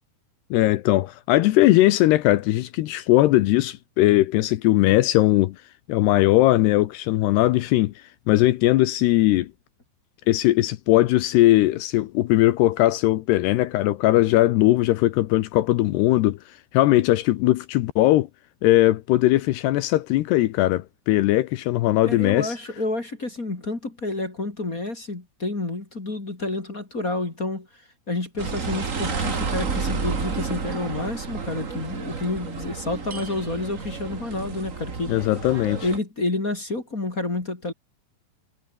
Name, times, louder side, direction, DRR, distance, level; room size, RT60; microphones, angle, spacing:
voice 1, 0.5-5.6 5.9-7.9 8.3-9.5 10.3-16.4 16.7-18.3 18.6-22.5 35.1-35.8, left 16 dB, 80° left, 2.9 m, -19 dB
voice 2, 22.0-27.8 28.1-35.1 35.8-37.7, left 2 dB, 20° left, 2.9 m, -29 dB
sound 1, 28.4-36.0, right 5 dB, 80° right, 0.7 m, -31 dB
omnidirectional pair, 5.0 m